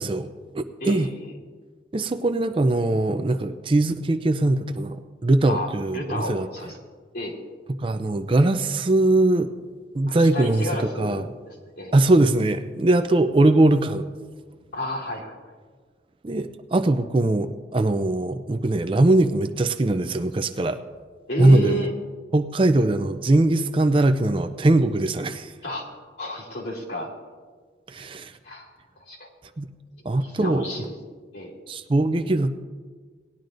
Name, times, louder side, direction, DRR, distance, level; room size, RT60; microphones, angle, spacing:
voice 1, 0.0-1.1 1.9-6.5 7.8-9.5 9.9-11.2 11.9-14.0 16.2-20.8 21.4-21.8 22.3-25.5 27.9-28.3 29.6-29.7 30.1-30.7 31.7-32.5, right 2 dB, 30° right, 9 dB, 0.4 m, -21 dB
voice 2, 0.8-1.4 5.5-6.8 7.1-7.3 10.1-11.9 14.7-15.4 21.3-21.9 25.6-27.1 28.4-28.7 29.1-29.3 30.2-30.9 31.3-31.5, equal, 65° left, -3 dB, 2.7 m, -31 dB
18.5 x 10.5 x 2.6 m, 1.5 s
head